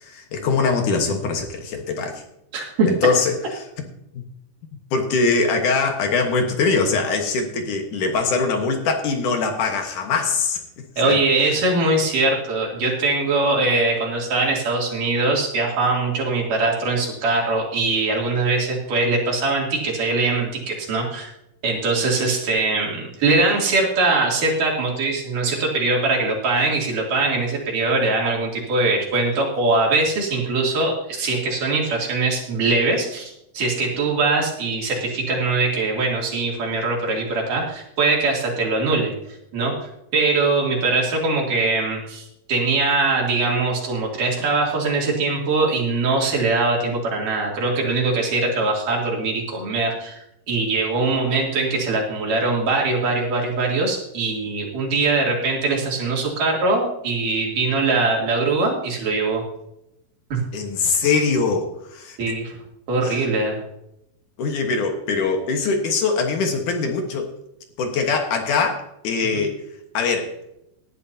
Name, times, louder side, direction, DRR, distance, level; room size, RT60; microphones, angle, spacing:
voice 1, 0.0-2.2 2.9-3.4 4.9-10.6 11.0-11.2 60.5-61.7 61.9-62.2 63.0-63.3 64.4-67.3 67.8-69.6 69.9-70.3, left 4 dB, 65° left, 4 dB, 2.8 m, -22 dB
voice 2, 2.5-2.9 11.0-21.3 21.6-39.1 39.5-59.4 60.3-60.4 62.2-62.6 62.9-63.6 69.3-69.4, right 3 dB, 65° right, -1 dB, 4.3 m, -22 dB
18.0 x 11.5 x 2.8 m, 0.81 s
omnidirectional pair, 4.1 m